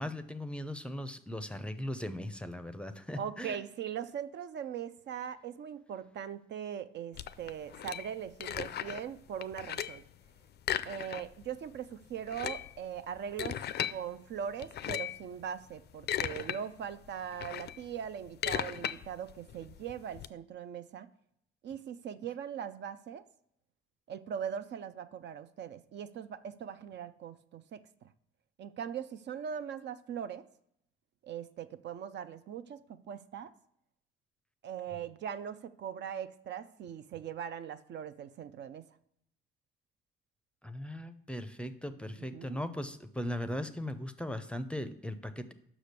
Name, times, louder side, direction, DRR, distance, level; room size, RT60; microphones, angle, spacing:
voice 1, 0.0-3.6 40.6-45.5, left 1 dB, 5° left, 10 dB, 0.5 m, -38 dB
voice 2, 3.1-10.0 10.8-13.6 13.9-21.1 21.6-23.2 24.1-28.1 28.6-30.5 31.2-33.5 34.6-38.9 42.3-42.6, right 8 dB, 60° right, 12 dB, 0.5 m, -40 dB
sound 1, 7.1-9.1 9.4-10.1 10.6-11.5 11.7-11.8 12.2-14.0 14.6-15.2 15.8-16.6 16.9-20.3, left 10 dB, 55° left, 0.4 m, -37 dB
6.0 x 4.9 x 6.6 m, 0.74 s
cardioid pair, 95°, 20 cm